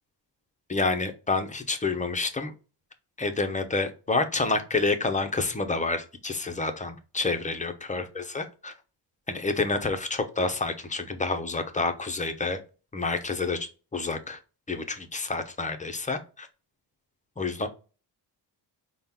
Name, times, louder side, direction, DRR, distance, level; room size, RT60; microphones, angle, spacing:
voice 1, 0.7-2.5 3.2-8.7 9.3-12.6 12.9-14.4 14.7-16.5 17.4-17.7, left 3 dB, 20° left, 0.4 m, -28 dB
5.5 x 2.2 x 3.5 m
wide cardioid pair, 155°, 44 cm